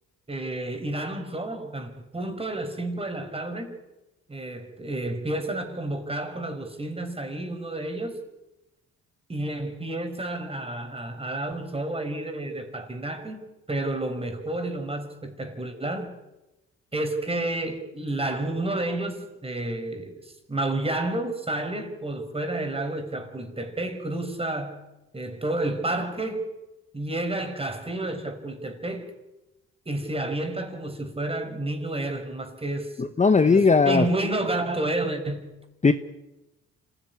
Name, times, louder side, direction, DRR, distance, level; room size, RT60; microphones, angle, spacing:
voice 1, 0.3-3.8 4.3-8.2 9.3-16.2 16.9-24.8 25.1-26.5 26.9-29.1 29.8-32.9 33.4-35.5, right 2 dB, 20° right, 6 dB, 5.1 m, -30 dB
voice 2, 33.0-34.0 35.8-35.9, left 4 dB, 25° left, 9 dB, 1.1 m, -18 dB
26.0 x 17.0 x 9.6 m, 0.99 s
cardioid pair, 90°, 30 cm